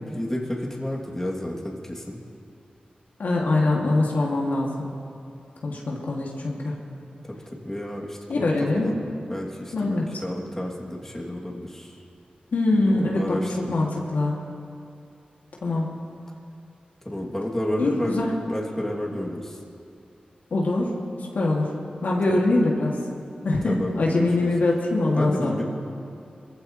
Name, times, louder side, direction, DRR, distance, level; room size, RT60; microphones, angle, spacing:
voice 1, 0.0-2.2 7.6-9.0 9.3-12.0 12.7-13.8 17.0-18.2 18.5-19.6 22.3-22.4 23.6-24.5 25.1-25.6, left 1 dB, 15° left, -3 dB, 2.6 m, -31 dB
voice 2, 3.2-4.9 5.6-6.7 8.3-8.9 9.7-10.1 12.5-14.4 15.6-15.9 17.8-18.4 20.5-20.9 21.3-21.7 22.0-22.9 23.4-25.6, left 2 dB, 80° left, -3 dB, 2.3 m, -23 dB
22.0 x 15.0 x 3.1 m, 2.5 s
cardioid pair, 60°, 3 cm